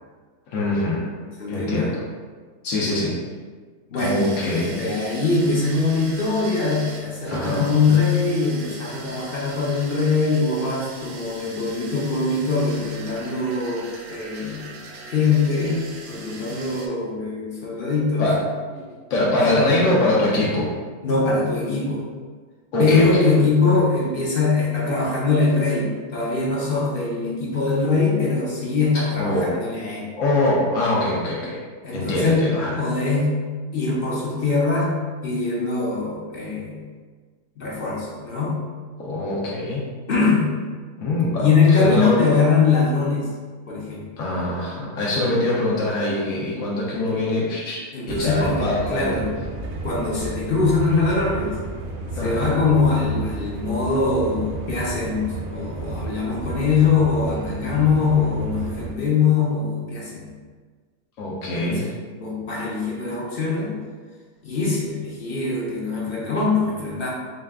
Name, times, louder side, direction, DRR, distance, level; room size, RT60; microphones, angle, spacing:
voice 1, 0.5-1.0 1.5-2.0 2.6-3.2 4.0-4.7 7.3-7.7 18.2-18.4 18.7-18.8 19.1-20.7 22.7-23.3 23.7-23.8 28.9-29.5 30.2-31.6 31.9-32.8 39.0-39.8 41.0-42.1 44.2-49.1 52.2-52.5 61.2-61.9, left 1 dB, 80° left, -5 dB, 1.1 m, -23 dB
voice 2, 1.4-1.9 3.9-14.7 15.1-18.3 19.4-19.6 21.0-22.1 22.8-30.1 31.8-33.4 33.7-36.9 37.6-38.7 40.1-40.6 41.4-43.3 43.7-44.1 47.1-47.2 47.9-49.3 49.8-51.6 52.2-60.3 61.6-61.9 62.2-63.8 64.4-67.1, left 4 dB, 55° left, -4 dB, 0.7 m, -22 dB
sound 1, 4.0-16.9, right 2 dB, 85° right, 1.0 m, -40 dB
sound 2, 48.1-58.9, right 2 dB, 55° right, 0.6 m, -32 dB
4.0 x 2.3 x 3.4 m, 1.5 s
omnidirectional pair, 1.4 m